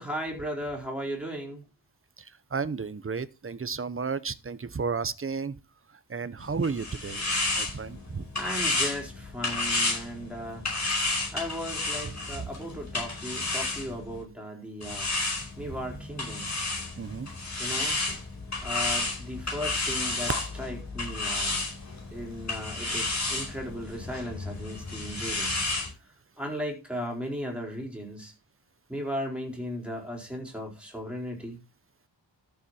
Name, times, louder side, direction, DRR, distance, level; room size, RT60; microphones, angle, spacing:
voice 1, 0.0-1.6 8.4-10.6 11.3-15.1 15.6-16.5 17.6-18.0 18.6-20.3 20.6-21.6 22.1-25.6 26.4-28.3 28.9-31.6, equal, ahead, 4.5 m, -36 dB
voice 2, 2.5-5.6 6.1-7.2 7.6-8.3 17.0-17.3 17.7-18.0, right 5 dB, 30° right, 0.7 m, -33 dB
sound 1, 6.4-14.2 14.8-25.9, left 2 dB, 35° left, 5.0 m, -31 dB
13.0 x 7.2 x 4.3 m
wide cardioid pair, 125°, 45 cm